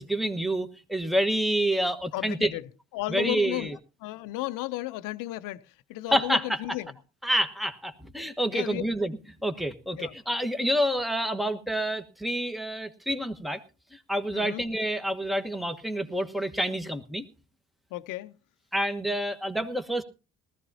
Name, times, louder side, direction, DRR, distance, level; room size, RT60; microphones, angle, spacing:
voice 1, 0.0-2.5 3.1-3.7 6.1-6.6 7.2-9.1 9.4-13.6 13.9-17.2 18.7-20.0, right 1 dB, ahead, 1.3 m, -28 dB
voice 2, 2.1-2.7 2.9-6.9 8.5-8.8 10.0-10.1 14.3-14.6 17.9-18.4, left 17 dB, 75° left, 0.8 m, -34 dB
19.5 x 14.0 x 2.8 m
supercardioid pair, 70°, 32 cm